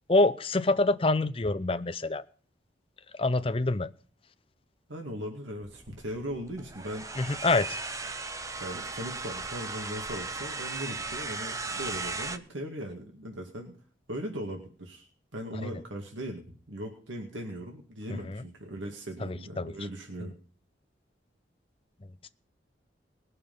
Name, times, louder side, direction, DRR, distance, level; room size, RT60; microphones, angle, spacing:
voice 1, 0.1-2.2 3.2-3.9 7.2-7.8 18.3-18.4 19.6-19.7, left 2 dB, 30° left, 12 dB, 0.6 m, -25 dB
voice 2, 4.9-7.1 8.6-13.7 14.1-20.3, equal, 85° right, 2 dB, 2.2 m, -39 dB
sound 1, 5.6-12.4, right 3 dB, 15° right, 0.6 m, -37 dB
20.0 x 6.7 x 5.5 m, 0.42 s
head